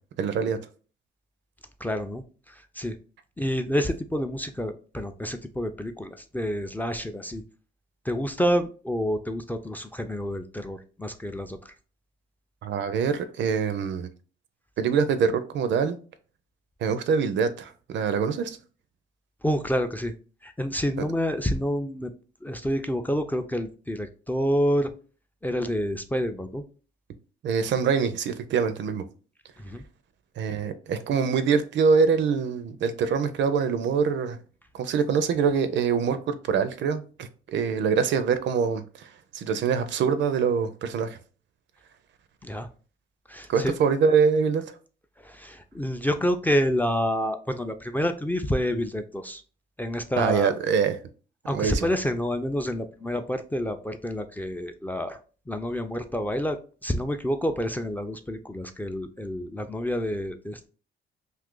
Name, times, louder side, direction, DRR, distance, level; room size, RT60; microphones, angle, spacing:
voice 1, 0.2-0.6 12.6-14.1 14.8-16.0 16.8-18.6 27.4-29.1 30.4-34.4 34.7-39.1 39.3-41.2 43.5-44.6 50.2-51.0 51.5-51.9, right 6 dB, 65° right, 0.5 m, -24 dB
voice 2, 1.8-2.9 3.4-7.4 8.0-11.7 19.4-20.1 20.4-22.1 22.4-24.9 25.4-26.6 29.6-29.8 42.4-42.7 43.3-43.7 45.2-49.4 49.8-50.6 51.5-55.2 55.5-56.6 56.8-60.7, equal, 10° left, 0.3 m, -28 dB
2.7 x 2.4 x 3.7 m
cardioid pair, 90°, 20 cm